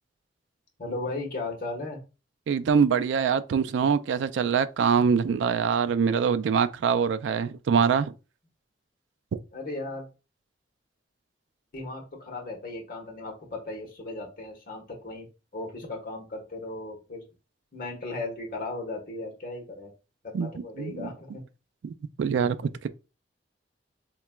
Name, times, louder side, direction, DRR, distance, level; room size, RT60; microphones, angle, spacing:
voice 1, 0.8-2.0 9.5-10.1 11.7-15.3 15.5-17.2 17.7-19.9 20.3-21.4, left 2 dB, 50° left, 1.2 m, -36 dB
voice 2, 2.5-8.1 20.3-21.1 21.8-22.9, right 6 dB, 85° right, 0.3 m, -24 dB
4.4 x 2.9 x 2.2 m
head